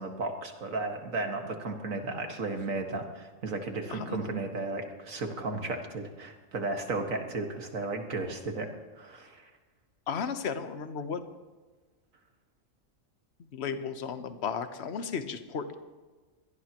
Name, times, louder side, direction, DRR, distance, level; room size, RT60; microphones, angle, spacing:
voice 1, 0.0-8.7 9.0-9.5, right 3 dB, 70° right, 4 dB, 2.2 m, -34 dB
voice 2, 3.9-4.2 10.1-11.2 13.5-15.7, left 6 dB, 55° left, 9 dB, 1.2 m, -34 dB
23.5 x 18.0 x 3.0 m, 1.3 s
omnidirectional pair, 1.4 m